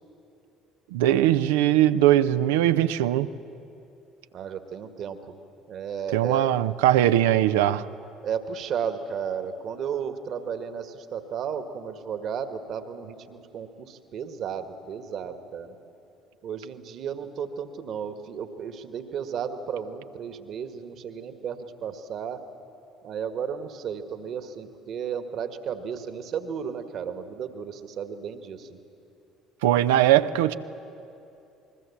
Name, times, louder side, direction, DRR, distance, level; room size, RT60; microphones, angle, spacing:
voice 1, 0.9-3.3 6.1-7.8 29.6-30.5, right 12 dB, 75° right, 12 dB, 0.6 m, -20 dB
voice 2, 4.3-5.3 5.7-6.5 8.2-15.8 16.4-22.4 23.0-28.8, right 7 dB, 55° right, 9 dB, 1.7 m, -34 dB
27.0 x 21.5 x 7.2 m, 2.7 s
figure-of-eight pair, 55°, 0 cm